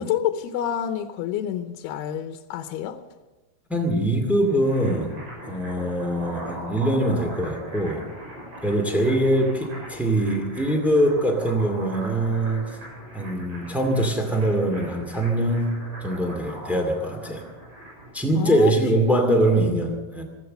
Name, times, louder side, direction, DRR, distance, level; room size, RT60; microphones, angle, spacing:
voice 1, 0.0-3.0 18.3-18.7, left 10 dB, 80° left, 2.8 m, -28 dB
voice 2, 3.7-8.1 8.6-12.6 13.1-15.7 16.0-17.4 18.1-20.2, right 1 dB, ahead, 0.6 m, -23 dB
sound 1, 4.5-18.2, right 1 dB, 55° right, 8.2 m, -40 dB
15.5 x 14.0 x 6.7 m
omnidirectional pair, 4.6 m